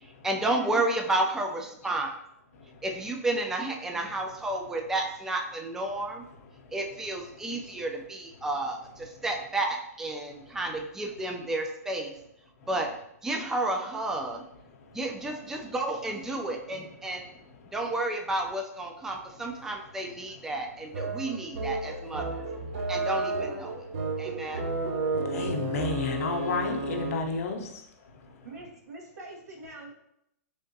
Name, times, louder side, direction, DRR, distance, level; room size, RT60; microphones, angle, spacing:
voice 1, 0.2-2.1 2.8-6.2 6.7-12.1 12.7-12.9 13.2-14.4 14.9-17.3 17.7-22.4 22.9-23.8 24.2-24.6, right 2 dB, 5° right, 0.4 m, -31 dB
voice 2, 2.5-2.8 6.5-6.8 7.5-7.8 9.1-9.2 14.6-15.0 15.6-15.7 16.7-16.9 17.6-17.8 21.0-21.2 22.7-23.1 23.7-24.9 25.3-28.5, left 4 dB, 60° left, 0.7 m, -35 dB
sound 1, 20.9-27.4, right 3 dB, 55° right, 0.6 m, -32 dB
voice 3, 28.4-29.9, right 2 dB, 75° right, 1.0 m, -44 dB
3.6 x 3.4 x 2.7 m
hypercardioid pair, 130°, 9 cm